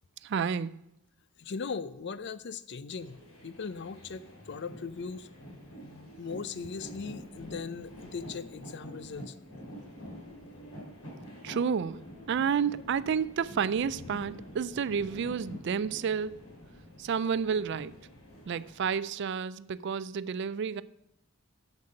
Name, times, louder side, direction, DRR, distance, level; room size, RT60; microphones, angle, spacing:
voice 1, 0.2-0.8 11.4-16.4 17.0-17.9 18.5-20.8, right 6 dB, 55° right, 0.3 m, -30 dB
voice 2, 1.4-3.2 3.4-5.3 6.2-9.3, left 5 dB, 55° left, 0.5 m, -39 dB
sound 1, 2.9-19.2, equal, 85° left, 3.8 m, -47 dB
7.6 x 7.3 x 6.4 m
head